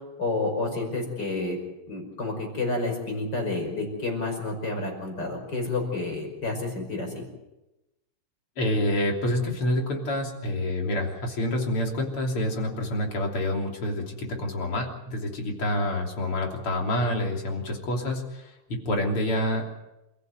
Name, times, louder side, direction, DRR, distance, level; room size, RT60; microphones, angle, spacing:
voice 1, 0.2-1.6 1.9-7.1, left 2 dB, 50° left, 3 dB, 6.2 m, -29 dB
voice 2, 8.6-19.6, left 1 dB, 80° left, 1 dB, 4.2 m, -27 dB
28.5 x 15.0 x 7.9 m, 0.97 s
omnidirectional pair, 2.4 m